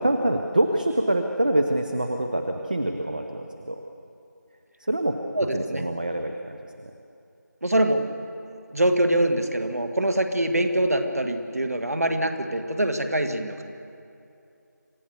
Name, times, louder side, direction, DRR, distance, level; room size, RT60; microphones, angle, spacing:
voice 1, 0.0-3.8 4.9-5.2 5.5-6.9, right 1 dB, 25° right, 5 dB, 0.7 m, -25 dB
voice 2, 5.4-5.9 7.6-8.1 8.7-13.6, right 1 dB, 55° right, 6 dB, 2.0 m, -24 dB
26.5 x 16.0 x 6.9 m, 2.6 s
figure-of-eight pair, 170°, 10 cm